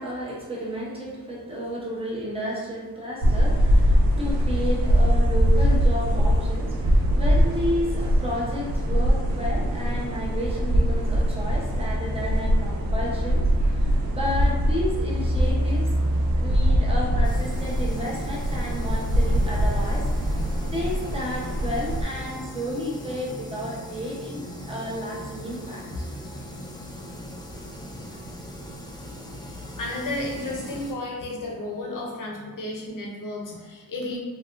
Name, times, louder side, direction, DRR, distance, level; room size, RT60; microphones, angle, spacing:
voice 1, 0.0-15.9 16.4-26.1 26.3-26.5, left 1 dB, 15° right, -5 dB, 0.8 m, -32 dB
sound 1, 3.2-22.0, equal, 85° right, 0.5 m, -22 dB
sound 2, 17.2-30.9, equal, 15° left, 0.3 m, -39 dB
voice 2, 29.4-34.2, left 1 dB, 60° left, -1 dB, 0.7 m, -33 dB
3.3 x 2.4 x 2.4 m, 1.4 s
wide cardioid pair, 110°, 35 cm